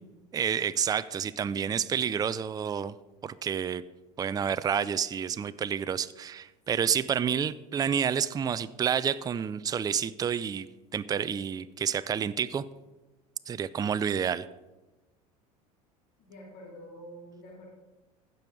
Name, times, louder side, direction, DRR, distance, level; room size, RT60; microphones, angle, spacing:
voice 1, 0.3-2.9 3.2-3.8 4.2-10.7 10.9-12.6 13.5-14.5, right 7 dB, 20° right, 15 dB, 0.4 m, -29 dB
voice 2, 16.2-17.7, equal, 60° left, -3 dB, 2.7 m, -47 dB
15.5 x 5.4 x 4.8 m, 1.1 s
hypercardioid pair, 80°, 19 cm